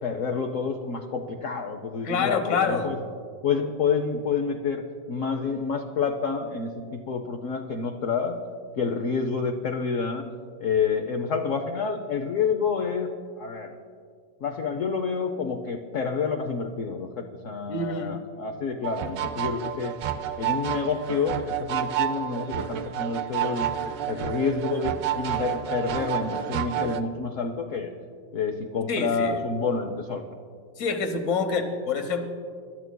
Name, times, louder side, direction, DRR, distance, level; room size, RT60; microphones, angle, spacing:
voice 1, 0.0-3.0 3.4-8.3 8.8-10.3 10.6-13.1 13.4-13.7 14.4-17.1 17.4-19.9 20.4-23.7 24.1-27.9 28.3-30.2, left 5 dB, 65° left, 5 dB, 0.8 m, -28 dB
voice 2, 2.0-3.0 17.7-18.1 28.9-29.4 30.8-32.3, left 4 dB, 45° left, 6 dB, 1.2 m, -27 dB
sound 1, 18.8-27.0, right 10 dB, 75° right, 1.3 m, -30 dB
26.0 x 12.5 x 2.2 m, 2.1 s
omnidirectional pair, 2.0 m